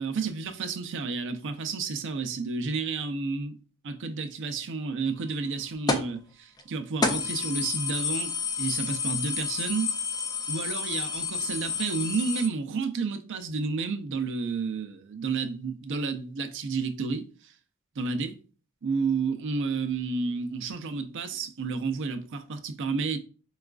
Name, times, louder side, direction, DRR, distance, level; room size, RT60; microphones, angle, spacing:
voice 1, 0.0-3.6 3.8-8.3 8.6-9.9 10.5-17.5 18.0-18.4 18.8-23.2, right 4 dB, 60° right, 0.5 m, -31 dB
sound 1, 5.9-6.2 6.6-6.7 7.0-12.5, left 5 dB, 20° left, 0.3 m, -30 dB
4.7 x 2.3 x 2.3 m
head